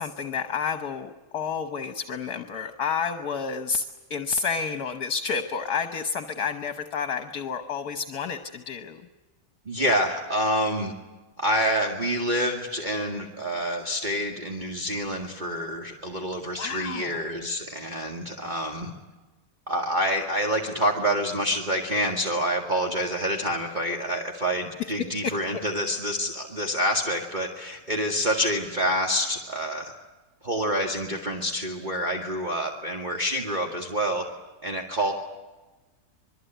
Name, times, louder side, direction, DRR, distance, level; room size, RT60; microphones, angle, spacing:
voice 1, 0.0-9.0 16.6-17.2 25.2-25.3, left 6 dB, 65° left, 7 dB, 1.6 m, -30 dB
voice 2, 9.7-10.9 11.4-18.9 19.7-29.9 30.4-34.2 34.6-35.1, equal, 25° right, 1 dB, 2.2 m, -27 dB
26.5 x 22.5 x 9.2 m, 1.2 s
omnidirectional pair, 1.9 m